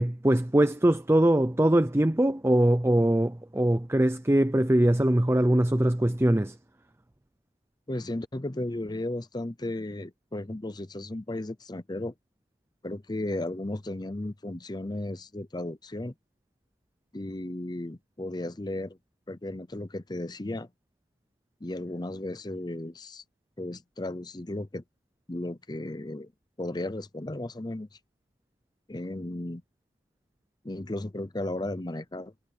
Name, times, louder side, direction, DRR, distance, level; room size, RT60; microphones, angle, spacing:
voice 1, 0.0-6.5, right 1 dB, 15° right, 0.5 m, -22 dB
voice 2, 7.9-12.1 12.8-16.1 17.1-19.0 19.3-20.7 21.6-23.2 23.6-24.8 25.3-26.3 26.6-27.9 28.9-29.6 30.6-32.3, left 1 dB, 25° left, 0.7 m, -35 dB
head